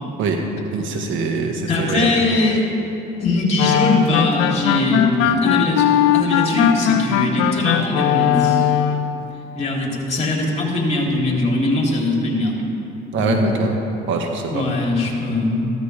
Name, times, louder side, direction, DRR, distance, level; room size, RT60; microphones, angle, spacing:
voice 1, 0.7-2.1 13.1-13.7 14.1-14.6, right 4 dB, 70° right, 3 dB, 1.6 m, -23 dB
voice 2, 1.7-2.7 3.2-5.9 6.1-8.7 9.5-12.7 13.1-13.5 14.5-15.7, left 2 dB, 30° left, -2 dB, 3.2 m, -21 dB
sound 1, 3.6-9.1, left 9 dB, 80° left, 0.6 m, -19 dB
14.5 x 13.0 x 3.4 m, 2.9 s
supercardioid pair, 80°, 21 cm